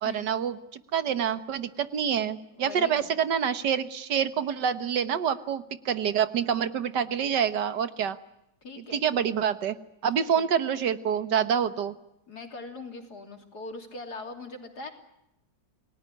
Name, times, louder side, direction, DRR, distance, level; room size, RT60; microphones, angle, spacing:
voice 1, 0.0-8.2 8.9-9.7 10.0-11.9, right 8 dB, 75° right, 12 dB, 1.8 m, -27 dB
voice 2, 2.6-3.2 8.6-9.2 10.1-10.5 12.3-14.9, left 3 dB, 65° left, 5 dB, 3.6 m, -41 dB
28.5 x 18.5 x 9.8 m, 0.87 s
omnidirectional pair, 1.9 m